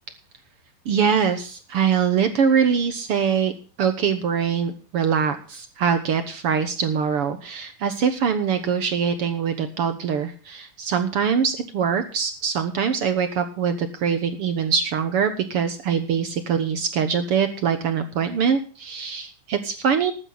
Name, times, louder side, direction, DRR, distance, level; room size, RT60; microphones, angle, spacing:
voice 1, 0.8-3.5 3.8-20.1, right 7 dB, 65° right, 9 dB, 1.5 m, -23 dB
14.5 x 12.0 x 3.9 m, 0.37 s
omnidirectional pair, 3.8 m